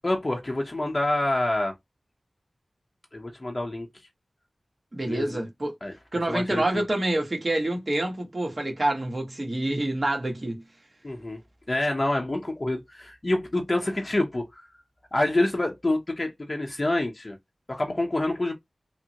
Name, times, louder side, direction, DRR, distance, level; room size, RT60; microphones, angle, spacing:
voice 1, 0.0-1.7 3.1-3.9 5.0-5.4 5.8-5.9 6.3-6.8 11.0-11.4 11.7-14.7 15.1-17.4 17.7-18.5, left 1 dB, 40° left, 0.7 m, -27 dB
voice 2, 4.9-5.7 6.1-10.6, right 1 dB, 45° right, 1.3 m, -27 dB
3.4 x 2.0 x 2.8 m
cardioid pair, 40°, 0 cm